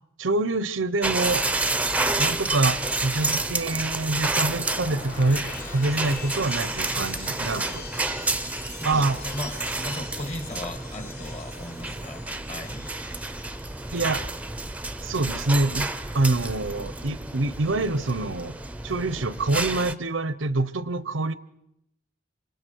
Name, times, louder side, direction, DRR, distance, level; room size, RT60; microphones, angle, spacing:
voice 1, 0.2-1.4 2.2-5.5 5.7-7.8 8.8-9.2 13.9-14.2 15.0-15.9 16.1-18.6 18.8-21.3, right 2 dB, 90° right, 15 dB, 0.9 m, -26 dB
sound 1, 1.0-19.9, right 2 dB, 5° right, 0.8 m, -30 dB
sound 2, 4.2-14.3 14.6-15.0, left 5 dB, 60° left, 5.6 m, -44 dB
voice 2, 8.7-12.9 19.3-19.4, left 1 dB, 35° left, 6 dB, 2.3 m, -37 dB
27.5 x 26.0 x 4.7 m, 0.80 s
head